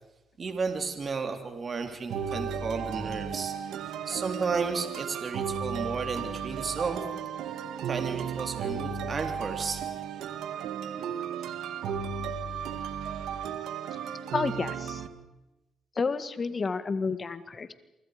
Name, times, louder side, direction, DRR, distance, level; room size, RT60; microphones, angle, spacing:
voice 1, 0.4-3.5 4.1-7.1 7.8-9.9, right 4 dB, 40° right, 5 dB, 3.5 m, -33 dB
sound 1, 2.1-15.1, right 7 dB, 80° right, 1.9 m, -34 dB
voice 2, 14.3-15.0 16.0-17.7, left 4 dB, 35° left, 12 dB, 1.8 m, -30 dB
28.0 x 24.5 x 5.2 m, 0.97 s
cardioid pair, 90°, 0 cm